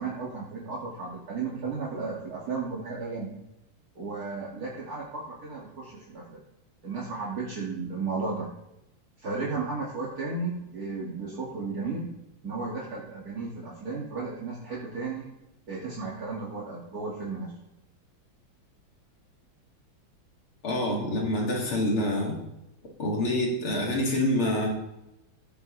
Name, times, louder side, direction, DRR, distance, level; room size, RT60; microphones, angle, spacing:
voice 1, 0.0-3.3 4.0-6.4 6.8-8.5 9.2-12.1 12.4-15.3 15.7-17.5, right 4 dB, 45° right, -5 dB, 2.4 m, -34 dB
voice 2, 20.6-22.3 23.0-24.7, left 1 dB, 85° left, -1 dB, 3.2 m, -26 dB
16.0 x 7.7 x 3.2 m, 0.91 s
omnidirectional pair, 2.3 m